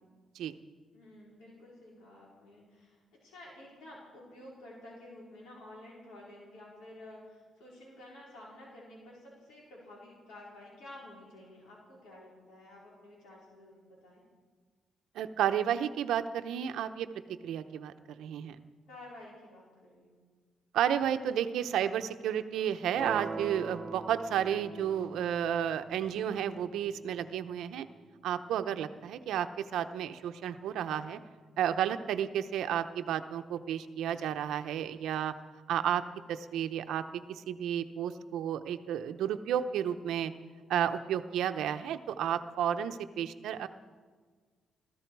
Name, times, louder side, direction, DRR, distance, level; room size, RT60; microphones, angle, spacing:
voice 1, 0.9-14.2 18.9-20.3, left 1 dB, 85° left, -4 dB, 4.4 m, -51 dB
voice 2, 15.1-17.1 17.4-18.6 20.7-27.9 28.2-31.2 31.6-35.3 35.7-36.0 36.3-37.0 37.3-40.3 40.7-43.7, right 9 dB, 80° right, 9 dB, 0.8 m, -32 dB
sound 1, 23.0-29.0, right 4 dB, 35° right, 1.2 m, -44 dB
21.5 x 14.0 x 4.7 m, 1.5 s
cardioid pair, 90°, 0 cm